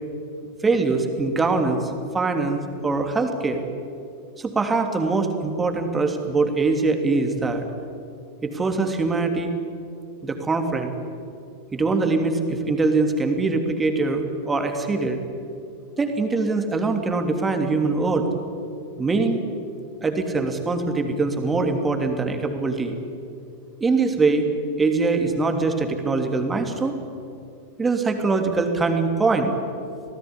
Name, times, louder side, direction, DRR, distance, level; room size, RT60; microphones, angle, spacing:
voice 1, 0.6-3.6 4.4-7.7 8.4-9.5 10.2-10.9 11.7-15.2 16.0-18.3 19.0-19.4 20.0-23.0 23.8-24.5 24.8-26.9 27.8-29.5, right 3 dB, 15° right, 5 dB, 3.2 m, -23 dB
27.0 x 18.5 x 10.0 m, 2.6 s
figure-of-eight pair, 90°, 0 cm